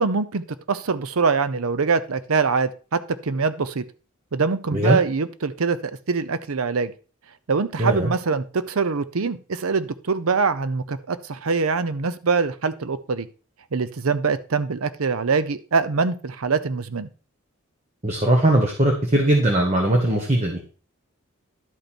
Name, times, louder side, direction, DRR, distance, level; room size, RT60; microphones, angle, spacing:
voice 1, 0.0-3.8 4.3-6.9 7.5-13.3 13.7-17.1, right 4 dB, 90° right, 14 dB, 0.7 m, -24 dB
voice 2, 7.8-8.1 18.0-20.6, right 1 dB, 30° right, 1 dB, 1.4 m, -19 dB
11.5 x 5.4 x 4.4 m, 0.37 s
head